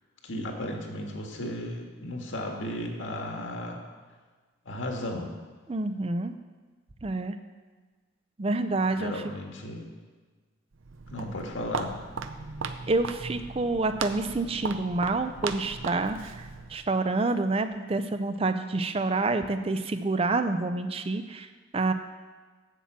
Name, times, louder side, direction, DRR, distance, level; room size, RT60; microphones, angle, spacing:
voice 1, 0.2-3.8 4.6-5.3 9.0-9.8 11.1-11.9, left 1 dB, 75° left, 2 dB, 1.7 m, -35 dB
voice 2, 5.7-6.3 7.0-7.4 8.4-9.2 12.9-21.9, right 3 dB, 30° right, 9 dB, 0.4 m, -28 dB
Walk footsteps, 10.7-16.9, right 5 dB, 80° right, 0.6 m, -37 dB
8.3 x 7.3 x 7.3 m, 1.4 s
head